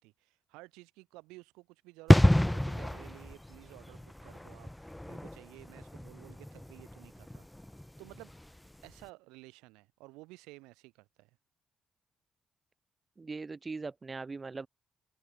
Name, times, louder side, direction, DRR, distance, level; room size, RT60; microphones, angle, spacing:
voice 1, 0.0-7.5 8.0-8.3 8.8-11.3, right 23 dB, 85° right, 4.0 m, -54 dB
sound 1, 2.1-8.6 8.8-9.0, left 1 dB, 10° left, 0.7 m, -29 dB
voice 2, 13.2-14.7, right 4 dB, 35° right, 0.7 m, -40 dB
open air
hypercardioid pair, 45°, 0 cm